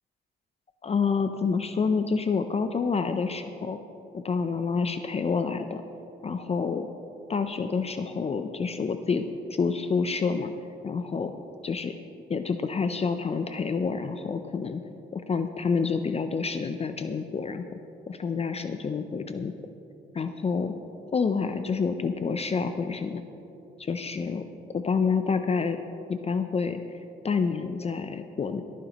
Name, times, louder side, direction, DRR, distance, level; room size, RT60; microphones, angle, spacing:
voice 1, 0.8-3.8 4.1-5.8 6.2-6.9 7.3-10.5 10.8-11.3 11.6-11.9 12.3-14.8 15.1-17.7 18.1-19.5 20.1-20.8 21.1-23.2 23.8-24.4 24.7-25.8 26.1-26.8 27.2-28.6, left 5 dB, 30° left, 8 dB, 0.5 m, -28 dB
23.0 x 9.3 x 3.0 m, 2.8 s
cardioid pair, 90°, 20 cm